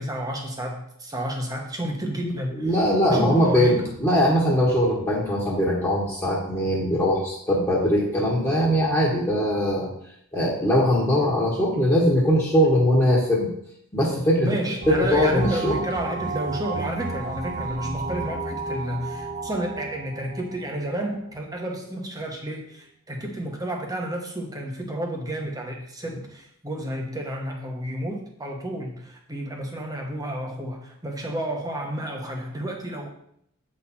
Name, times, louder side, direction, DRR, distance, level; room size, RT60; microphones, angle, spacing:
voice 1, 0.0-2.7 3.0-3.9 14.4-33.1, right 1 dB, 15° right, 1 dB, 1.1 m, -31 dB
voice 2, 2.5-9.9 10.3-13.5 13.9-14.5 14.9-15.7, equal, 15° left, -6 dB, 1.5 m, -21 dB
sound 1, 14.8-21.2, right 3 dB, 35° right, 0.4 m, -32 dB
7.9 x 4.3 x 4.3 m, 0.70 s
head